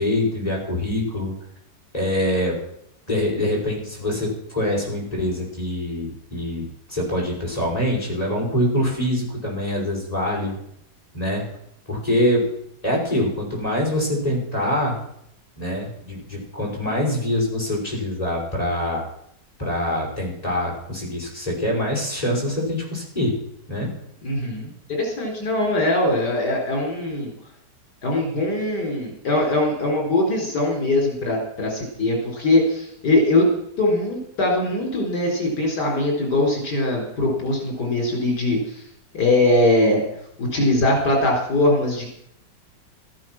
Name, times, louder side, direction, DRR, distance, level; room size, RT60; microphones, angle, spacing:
voice 1, 0.0-1.4 1.9-2.6 3.1-10.6 11.1-11.4 11.9-12.5 12.8-15.0 15.6-19.0 19.6-23.3 23.7-23.9, left 1 dB, 20° left, -2 dB, 5.8 m, -24 dB
voice 2, 24.2-27.3 28.0-33.5 33.8-38.8 39.1-40.0 40.4-42.1, left 2 dB, 70° left, 0 dB, 4.9 m, -21 dB
14.5 x 14.0 x 6.1 m, 0.73 s
omnidirectional pair, 1.9 m